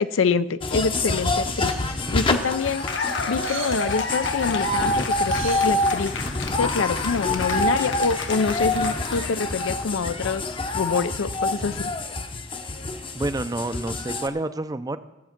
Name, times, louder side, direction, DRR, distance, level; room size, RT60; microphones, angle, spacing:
voice 1, 0.0-1.7 2.1-2.9 3.3-6.1 6.6-10.5 10.7-11.9, left 5 dB, 85° left, 15 dB, 0.5 m, -25 dB
sound 1, 0.6-14.3, left 2 dB, 25° left, 0.7 m, -27 dB
sound 2, 1.1-7.1, right 7 dB, 90° right, 1.7 m, -43 dB
Cheering / Applause, 2.4-9.9, left 3 dB, 65° left, 0.9 m, -32 dB
voice 2, 13.1-15.0, right 2 dB, 20° right, 12 dB, 0.4 m, -28 dB
13.0 x 7.9 x 5.9 m, 0.99 s
head